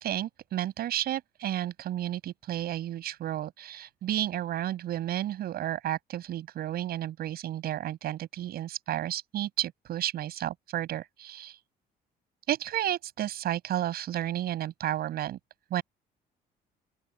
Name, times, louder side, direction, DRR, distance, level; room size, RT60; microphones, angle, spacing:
voice 1, 0.0-11.6 12.5-15.4 15.7-15.8, right 12 dB, 65° right, 7.8 m, -32 dB
open air
cardioid pair, 110°, 17 cm